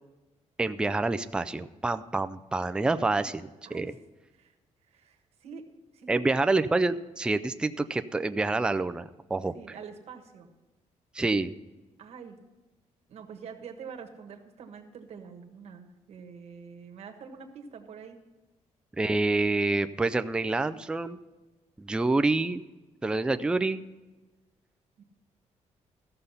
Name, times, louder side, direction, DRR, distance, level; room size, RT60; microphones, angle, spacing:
voice 1, 0.6-3.4 3.7-3.9 6.1-9.5 11.1-11.5 19.0-21.2 21.8-22.6 23.0-23.8, right 3 dB, 5° right, 11 dB, 0.3 m, -27 dB
voice 2, 2.9-3.3 3.6-3.9 4.3-4.5 4.9-5.6 5.9-6.3 9.5-10.5 12.0-12.4 13.1-18.2 25.0-25.1, right 6 dB, 60° right, 4 dB, 1.3 m, -45 dB
14.0 x 6.6 x 5.6 m, 1.2 s
cardioid pair, 165°, 12 cm